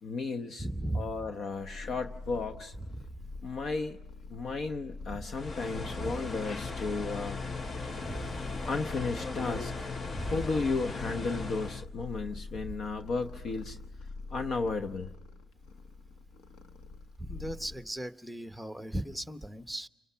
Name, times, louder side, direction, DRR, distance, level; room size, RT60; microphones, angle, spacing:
voice 1, 0.0-0.6 0.9-2.7 3.4-4.0 4.3-7.4 8.7-9.9 10.3-13.8 14.3-15.1, left 4 dB, 60° left, 6 dB, 0.9 m, -34 dB
voice 2, 0.6-1.3 2.8-3.0 5.1-5.2 6.0-6.2 8.0-8.6 10.1-10.5 12.5-12.6 17.2-19.9, right 1 dB, ahead, 9 dB, 1.0 m, -37 dB
Purr, 1.2-18.0, left 3 dB, 90° left, 1.3 m, -45 dB
sound 1, 5.3-11.8, left 3 dB, 35° left, 0.9 m, -38 dB
29.5 x 23.0 x 5.7 m, 0.99 s
cardioid pair, 90°, 0 cm